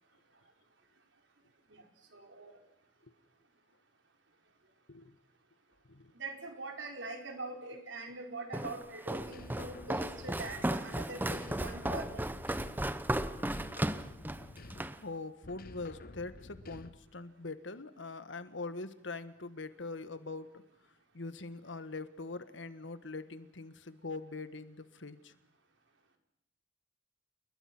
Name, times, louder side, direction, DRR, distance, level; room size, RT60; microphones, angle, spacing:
voice 1, 2.1-2.5 6.2-12.2, right 2 dB, 80° right, 4 dB, 4.6 m, -43 dB
Walk footsteps, 8.5-15.0, right 1 dB, 10° right, 0.9 m, -35 dB
sound 1, 9.2-10.9 11.2-13.0 13.3-15.1 15.4-17.1, left 2 dB, 50° left, 1.2 m, -51 dB
voice 2, 15.0-20.6 21.1-25.3, left 3 dB, 80° left, 12 dB, 1.6 m, -43 dB
29.5 x 21.5 x 6.1 m, 0.73 s
head